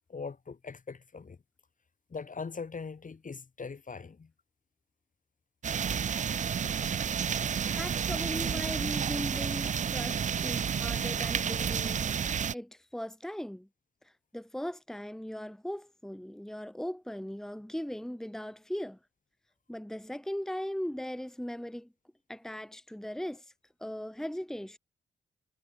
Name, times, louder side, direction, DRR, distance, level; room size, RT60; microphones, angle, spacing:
voice 1, 0.1-1.4 2.1-4.3, left 5 dB, 45° left, 2.1 m, -41 dB
sound 1, 5.6-12.5, right 7 dB, 40° right, 0.4 m, -31 dB
voice 2, 7.8-13.7 14.0-19.0 19.7-21.9 22.3-23.5 23.8-24.8, equal, ahead, 1.5 m, -39 dB
supercardioid pair, 55°, 19 cm